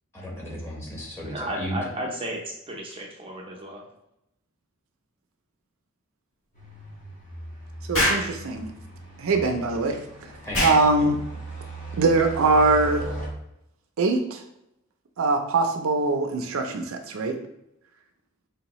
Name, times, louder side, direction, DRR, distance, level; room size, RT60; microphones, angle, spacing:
voice 1, 0.1-1.8 10.4-11.1, equal, 10° left, -4 dB, 1.1 m, -35 dB
voice 2, 1.2-2.4 2.7-3.8, right 1 dB, 25° right, -1 dB, 0.7 m, -33 dB
sound 1, 6.5-13.3, right 2 dB, 35° left, 1.1 m, -38 dB
Explosion, 7.9-8.3 10.5-10.8, left 1 dB, 90° left, 1.5 m, -23 dB
voice 3, 7.9-8.7 9.2-10.0 10.6-11.2 12.0-13.1 14.0-14.4 15.2-17.4, right 3 dB, 70° right, 5 dB, 0.5 m, -22 dB
4.7 x 2.8 x 2.9 m, 0.82 s
head